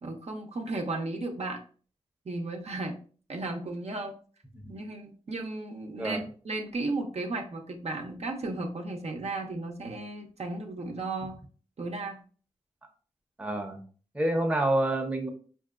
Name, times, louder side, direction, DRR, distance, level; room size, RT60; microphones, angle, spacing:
voice 1, 0.0-1.6 2.2-3.0 3.3-4.2 4.7-11.4 11.8-12.2, right 2 dB, 65° right, 2 dB, 0.6 m, -34 dB
voice 2, 6.0-6.3 13.4-13.8 14.1-15.3, right 1 dB, 10° right, 3 dB, 0.7 m, -28 dB
4.5 x 2.7 x 2.4 m, 0.42 s
wide cardioid pair, 65°, 12 cm